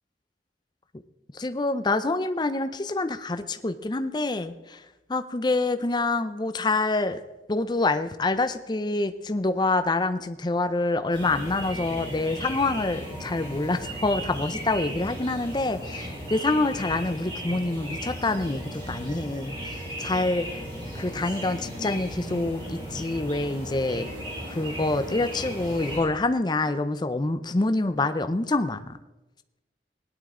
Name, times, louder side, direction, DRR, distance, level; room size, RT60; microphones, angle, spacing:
voice 1, 1.3-4.8 5.1-7.2 7.5-20.5 20.9-24.1 24.5-29.0, left 2 dB, 25° left, 11 dB, 0.5 m, -26 dB
sound 1, 11.1-26.0, equal, 25° right, 5.0 m, -36 dB
17.5 x 11.0 x 3.7 m, 1.1 s
head